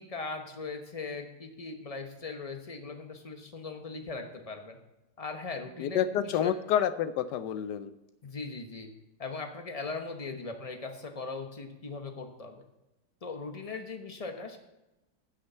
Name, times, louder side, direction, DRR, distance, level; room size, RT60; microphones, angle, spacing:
voice 1, 0.0-4.8 5.2-6.5 8.2-8.9 9.2-12.6 13.2-14.6, left 4 dB, 25° left, 5 dB, 0.8 m, -39 dB
voice 2, 5.8-7.9, left 9 dB, 75° left, 14 dB, 1.1 m, -28 dB
9.8 x 6.5 x 8.0 m, 0.96 s
omnidirectional pair, 1.9 m